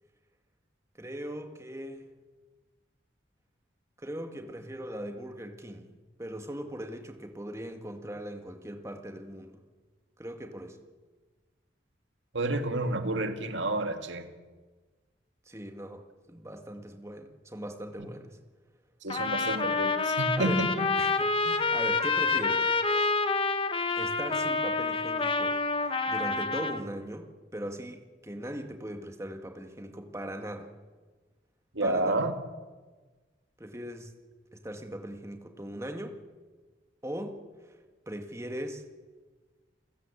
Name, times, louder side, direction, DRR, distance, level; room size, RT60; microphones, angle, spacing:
voice 1, 1.0-2.1 4.0-9.6 10.2-10.8 15.5-18.4 20.4-20.7 21.0-22.7 23.9-30.7 31.8-32.2 33.6-34.1 34.5-36.2 37.0-37.4 38.1-38.8, equal, 15° right, 5 dB, 2.0 m, -39 dB
voice 2, 12.3-14.3 19.0-20.9 31.8-32.3, right 2 dB, 90° right, 6 dB, 2.0 m, -29 dB
Trumpet, 19.1-26.8, left 4 dB, 30° left, 1.3 m, -28 dB
29.0 x 16.0 x 8.5 m, 1.4 s
head